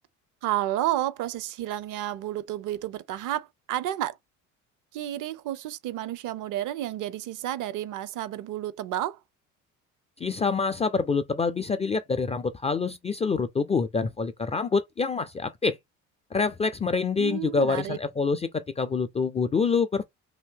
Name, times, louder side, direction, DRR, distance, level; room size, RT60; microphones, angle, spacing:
voice 1, 0.4-4.2 4.9-9.2 17.2-18.0, right 13 dB, 55° right, 0.6 m, -31 dB
voice 2, 10.2-15.8 16.3-20.0, left 4 dB, 20° left, 0.3 m, -26 dB
2.7 x 2.7 x 3.6 m
hypercardioid pair, 65°, 38 cm